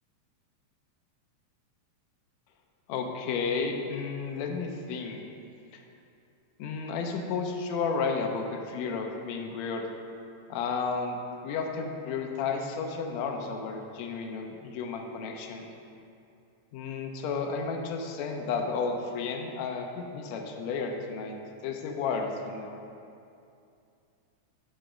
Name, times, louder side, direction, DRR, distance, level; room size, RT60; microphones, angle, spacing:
voice 1, 2.9-5.2 6.6-9.9 10.5-11.2 11.4-15.7 16.7-21.4 21.6-22.8, left 5 dB, 80° left, 3 dB, 1.8 m, -32 dB
9.7 x 3.4 x 5.0 m, 2.6 s
omnidirectional pair, 3.3 m